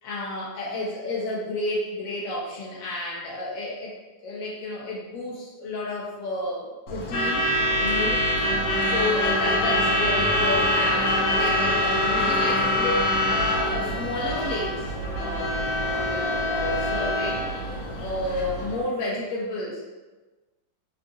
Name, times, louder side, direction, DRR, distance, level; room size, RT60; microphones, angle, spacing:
voice 1, 0.0-3.9 4.2-7.5 7.8-8.2 8.8-14.9 15.1-17.4 18.0-19.8, left 2 dB, 60° left, -4 dB, 1.0 m, -31 dB
Truck / Alarm, 6.9-18.8, left 1 dB, 75° left, 1.4 m, -24 dB
3.8 x 2.4 x 2.5 m, 1.2 s
omnidirectional pair, 2.1 m